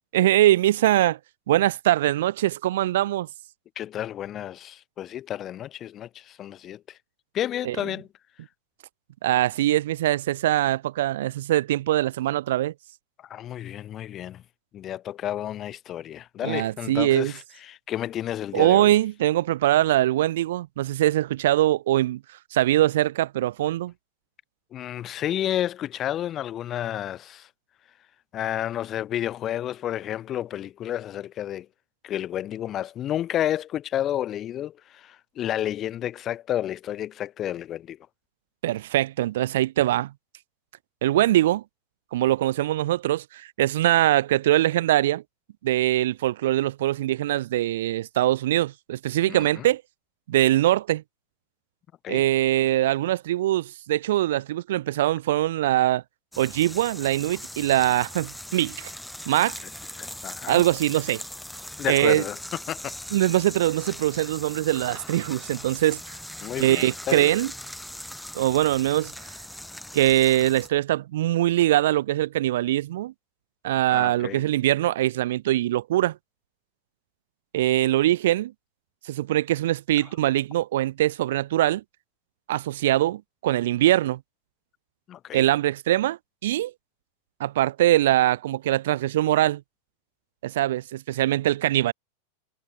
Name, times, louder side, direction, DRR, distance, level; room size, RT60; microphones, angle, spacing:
voice 1, 0.1-1.2 1.5-3.3 7.6-7.8 9.2-12.7 16.4-17.3 18.5-22.2 22.5-23.9 38.6-40.1 41.0-41.6 42.1-45.2 45.6-49.8 50.3-51.0 52.1-56.0 56.4-58.9 59.3-59.6 60.5-61.2 61.9-62.2 63.1-66.1 66.6-67.5 68.3-69.1 69.9-73.1 73.6-76.2 77.5-78.5 79.1-81.8 82.5-84.2 85.3-86.7 87.4-89.6 90.4-91.9, right 14 dB, 55° right, 0.6 m, -22 dB
voice 2, 3.7-7.0 7.3-8.1 13.2-14.4 14.7-19.0 24.7-27.5 28.3-31.7 32.0-38.0 49.3-49.7 52.0-52.2 60.0-60.6 61.8-63.0 66.4-67.3 73.9-74.5 80.0-80.1 85.1-85.4, left 11 dB, 30° left, 1.5 m, -31 dB
sound 1, 56.3-70.7, left 1 dB, ahead, 1.5 m, -40 dB
figure-of-eight pair, 90°, 0 cm